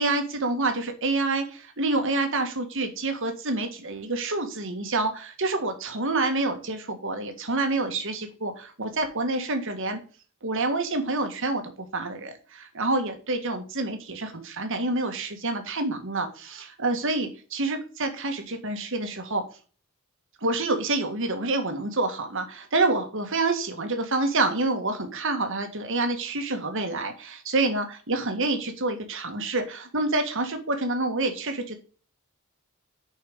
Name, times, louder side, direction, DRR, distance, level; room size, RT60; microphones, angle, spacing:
voice 1, 0.0-10.0 10.4-19.4 20.4-31.8, right 2 dB, 65° right, 6 dB, 1.8 m, -27 dB
6.7 x 5.5 x 6.6 m, 0.38 s
head